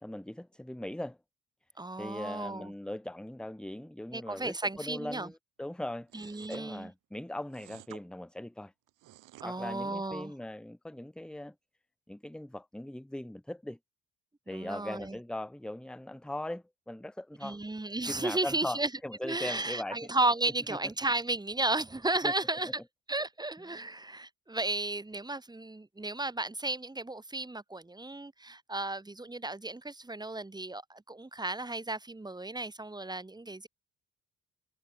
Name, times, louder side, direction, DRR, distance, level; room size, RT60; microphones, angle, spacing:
voice 1, 0.0-1.2 2.0-8.7 9.4-11.5 12.1-13.8 14.5-17.6 18.1-20.1 22.2-22.3 22.7-22.8 23.7-23.8, left 1 dB, 5° left, 1.0 m, -40 dB
voice 2, 1.8-2.7 4.1-5.3 6.1-6.9 9.4-10.3 14.5-15.2 17.4-18.9 19.2-22.8 23.1-33.7, right 2 dB, 15° right, 2.3 m, -34 dB
sound 1, 6.1-6.6 7.5-8.0 8.9-9.5, right 15 dB, 90° right, 7.8 m, -52 dB
cardioid pair, 90°, 30 cm